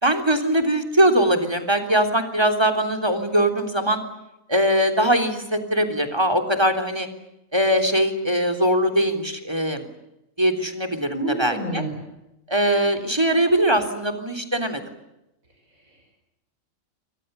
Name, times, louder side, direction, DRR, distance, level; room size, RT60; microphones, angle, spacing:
voice 1, 0.0-4.0 4.5-7.1 7.5-9.9 10.4-11.8 12.5-14.8, right 1 dB, 20° right, 10 dB, 3.4 m, -21 dB
voice 2, 11.1-12.0 15.7-16.1, right 2 dB, 80° right, 1 dB, 6.7 m, -30 dB
29.0 x 24.0 x 6.9 m, 0.91 s
omnidirectional pair, 1.4 m